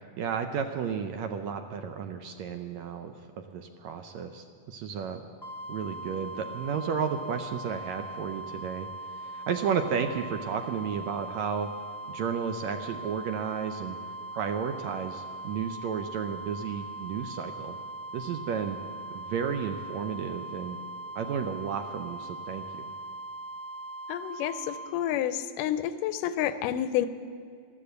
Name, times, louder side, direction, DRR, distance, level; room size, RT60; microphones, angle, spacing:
voice 1, 0.2-5.2 5.7-11.7 12.1-14.0 14.3-17.8 18.1-18.8 19.1-20.8 21.2-22.9, right 7 dB, 75° right, 7 dB, 1.7 m, -33 dB
sound 1, 5.4-24.9, right 2 dB, ahead, 0.6 m, -40 dB
voice 2, 24.1-27.1, left 11 dB, 85° left, 13 dB, 2.2 m, -29 dB
13.5 x 12.5 x 8.0 m, 2.2 s
omnidirectional pair, 3.7 m